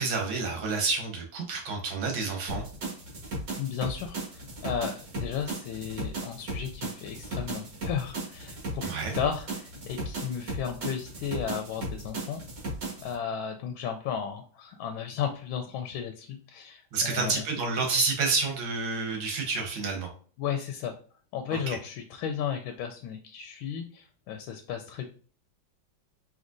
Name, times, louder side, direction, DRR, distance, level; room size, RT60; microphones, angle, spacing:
voice 1, 0.0-2.7 8.8-9.1 16.9-20.1 21.5-21.8, right 4 dB, 80° right, 1 dB, 1.9 m, -29 dB
sound 1, 2.5-13.1, right 2 dB, 60° right, 2.2 m, -36 dB
voice 2, 3.6-12.4 13.0-17.4 20.4-20.9 21.3-25.1, left 8 dB, 90° left, 5 dB, 1.4 m, -34 dB
5.3 x 3.1 x 2.5 m, 0.43 s
omnidirectional pair, 2.1 m